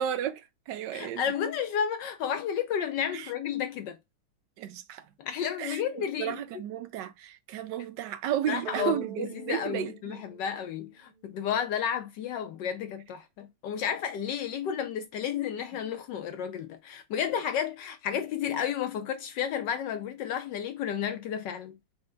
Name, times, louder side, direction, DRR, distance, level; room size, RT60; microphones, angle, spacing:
voice 1, 0.0-1.2 3.1-3.3 4.6-5.1 5.6-10.2, right 10 dB, 75° right, 1.0 m, -33 dB
voice 2, 0.9-4.0 5.2-6.4 8.5-21.8, left 8 dB, 75° left, 1.0 m, -32 dB
sound 1, 8.6-11.2, right 11 dB, 45° right, 0.9 m, -41 dB
4.4 x 3.2 x 3.8 m
omnidirectional pair, 2.4 m